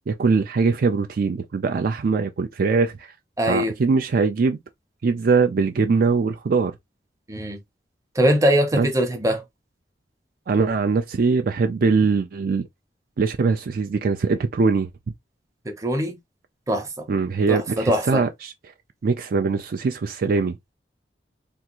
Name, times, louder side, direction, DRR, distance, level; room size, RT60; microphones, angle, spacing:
voice 1, 0.1-3.1 3.5-4.6 5.0-6.7 8.7-8.9 10.5-12.7 13.2-14.9 17.1-18.5 19.0-20.6, right 4 dB, 55° right, 0.4 m, -22 dB
voice 2, 3.4-3.7 7.3-7.6 8.2-9.4 15.6-16.2 16.7-17.0 17.5-18.2, equal, 20° right, 0.7 m, -22 dB
3.5 x 2.4 x 2.9 m
head